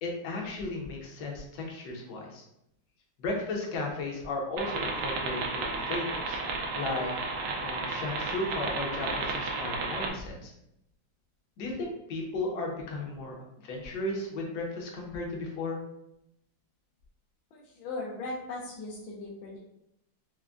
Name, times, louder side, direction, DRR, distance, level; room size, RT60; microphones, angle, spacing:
voice 1, 0.0-2.4 3.2-6.4 6.8-7.1 7.6-10.5 11.6-15.8, left 2 dB, 60° left, 0 dB, 1.2 m, -35 dB
sound 1, 4.6-10.1, right 3 dB, 70° right, 1.0 m, -33 dB
voice 2, 17.5-19.6, left 2 dB, 80° left, -4 dB, 1.4 m, -38 dB
5.8 x 2.1 x 2.5 m, 0.81 s
omnidirectional pair, 2.1 m